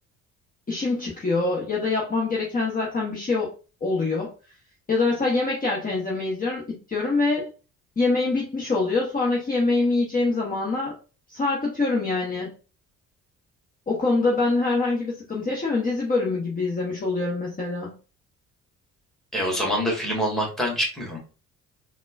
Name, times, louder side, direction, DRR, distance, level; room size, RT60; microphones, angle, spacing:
voice 1, 0.7-3.5 3.8-4.3 4.9-7.5 8.0-10.9 11.3-12.5 13.9-17.9, left 3 dB, 20° left, -3 dB, 1.0 m, -24 dB
voice 2, 19.3-21.2, equal, ahead, -1 dB, 1.7 m, -25 dB
4.0 x 2.3 x 2.5 m, 0.34 s
hypercardioid pair, 50°, 40 cm